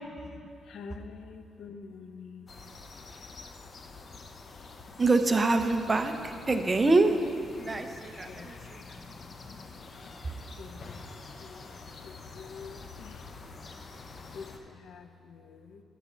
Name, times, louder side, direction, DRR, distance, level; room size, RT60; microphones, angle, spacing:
voice 1, 0.0-2.6 4.8-5.0 6.0-6.9 7.4-8.5 9.2-10.1 10.6-13.3 14.3-15.8, left 5 dB, 80° left, 8 dB, 0.6 m, -48 dB
sound 1, 2.5-14.6, left 3 dB, 45° left, 0.7 m, -47 dB
voice 2, 5.0-7.2 7.6-8.8 10.2-10.3, right 3 dB, 25° right, 7 dB, 0.6 m, -25 dB
12.5 x 4.4 x 7.1 m, 2.4 s
cardioid pair, 115°, 0 cm